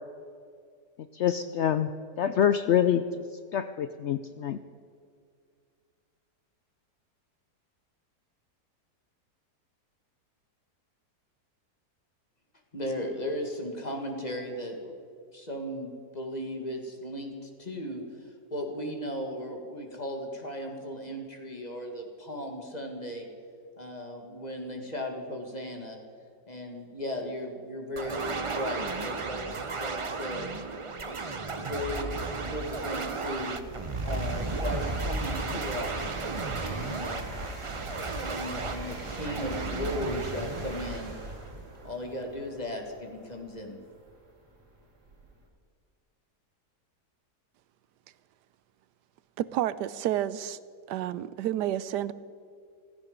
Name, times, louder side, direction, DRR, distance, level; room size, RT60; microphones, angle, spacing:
voice 1, 1.1-1.9 2.2-3.0 3.5-4.6, left 9 dB, 85° left, 10 dB, 0.6 m, -25 dB
voice 2, 12.7-14.9 15.3-23.3 23.8-26.0 26.5-30.6 31.0-33.6 34.0-36.1 36.6-37.4 38.0-41.1 41.8-43.8, left 1 dB, 25° left, 3 dB, 2.0 m, -36 dB
sound 1, 28.0-41.8, right 3 dB, 55° right, 0.3 m, -34 dB
sound 2, 29.9-30.0 30.6-45.4, right 2 dB, 75° right, 2.9 m, -41 dB
voice 3, 49.4-50.6 50.9-52.1, right 12 dB, 90° right, 16 dB, 1.2 m, -30 dB
16.0 x 15.0 x 5.2 m, 2.2 s
omnidirectional pair, 1.8 m